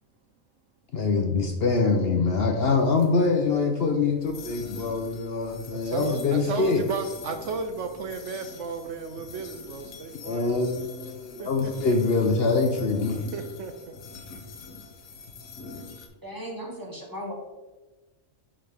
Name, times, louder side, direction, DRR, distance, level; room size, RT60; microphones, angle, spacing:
voice 1, 0.9-6.8 10.1-13.2, left 4 dB, 55° left, 3 dB, 0.8 m, -24 dB
sound 1, 2.7-16.1, left 4 dB, 85° left, 1.3 m, -44 dB
voice 2, 5.8-10.7 11.4-11.9 13.3-14.0, right 4 dB, 70° right, 7 dB, 0.9 m, -34 dB
voice 3, 16.2-17.3, equal, 15° right, -1 dB, 1.2 m, -36 dB
11.0 x 3.8 x 3.4 m, 1.2 s
omnidirectional pair, 1.4 m